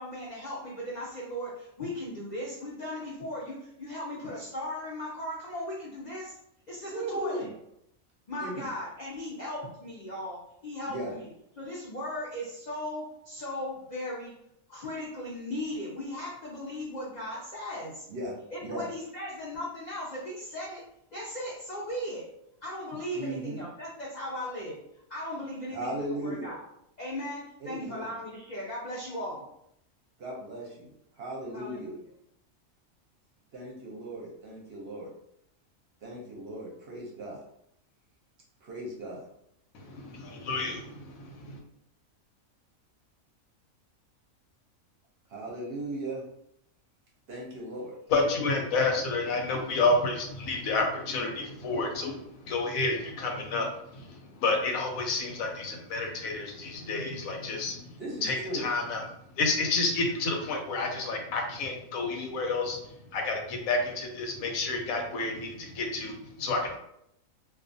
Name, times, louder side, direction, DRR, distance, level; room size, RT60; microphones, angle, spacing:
voice 1, 0.0-6.4 6.7-7.5 8.3-11.3 11.6-14.3 14.7-18.0 18.5-20.8 21.1-22.3 22.6-24.8 25.1-25.9 26.2-26.6 27.0-29.4 31.5-32.0, left 1 dB, 65° left, -5 dB, 0.4 m, -37 dB
voice 2, 6.9-7.5 8.4-8.7 10.9-11.1 18.1-18.3 18.6-18.8 23.1-23.6 25.7-26.5 27.6-28.1 30.2-31.9 33.5-35.1 36.0-37.4 38.6-39.2 45.3-46.2 47.3-47.9 58.0-58.6, right 1 dB, 60° right, -2 dB, 0.7 m, -37 dB
voice 3, 40.5-40.8 48.1-57.8 58.2-59.0 59.4-62.8 63.1-66.8, left 3 dB, 90° left, 2 dB, 1.0 m, -29 dB
2.3 x 2.3 x 2.5 m, 0.76 s
omnidirectional pair, 1.4 m